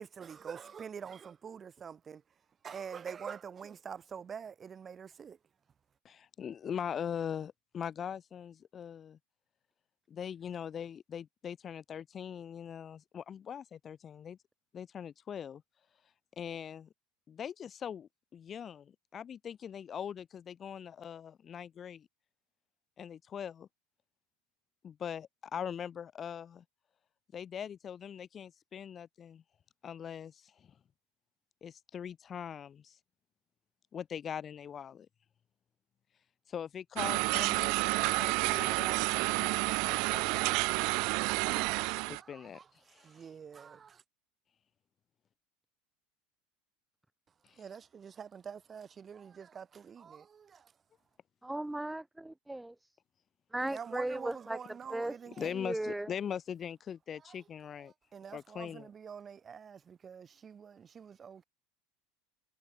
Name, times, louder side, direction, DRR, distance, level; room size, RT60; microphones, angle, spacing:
voice 1, 0.0-2.2 2.6-5.4 42.2-42.7 42.9-44.0 47.6-50.7 53.7-55.5 57.8-61.4, right 7 dB, 25° right, 4.1 m, -46 dB
voice 2, 6.0-9.2 10.1-14.4 14.7-15.6 16.4-16.9 17.3-22.1 23.0-23.7 24.8-26.6 27.3-29.4 29.8-30.7 31.6-33.0 33.9-35.1 36.5-40.5 42.1-42.6 42.9-43.1 47.4-47.6 55.3-57.9 58.3-58.9, left 8 dB, 30° left, 1.9 m, -41 dB
sound 1, 37.0-42.2, right 30 dB, 65° right, 1.6 m, -30 dB
voice 3, 51.4-52.7 53.5-54.6 54.9-55.2 55.6-56.1, right 1 dB, 5° right, 0.6 m, -36 dB
supercardioid pair, 115°, 0 cm